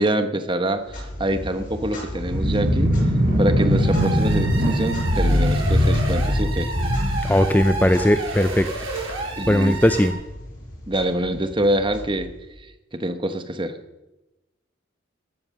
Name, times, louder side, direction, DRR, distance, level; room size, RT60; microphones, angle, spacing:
voice 1, 0.0-2.9 3.4-6.7 9.4-9.8 10.9-12.3 12.9-13.8, right 1 dB, 25° right, 9 dB, 1.2 m, -25 dB
Clock, 0.7-12.7, left 1 dB, 45° left, 6.4 m, -38 dB
sound 1, 2.2-8.2, equal, 45° right, 4.3 m, -21 dB
sound 2, 3.7-10.1, right 3 dB, 80° right, 7.4 m, -32 dB
voice 2, 7.2-8.7 9.5-10.1, left 1 dB, 10° left, 10 dB, 0.5 m, -18 dB
14.5 x 13.0 x 6.5 m, 1.0 s
head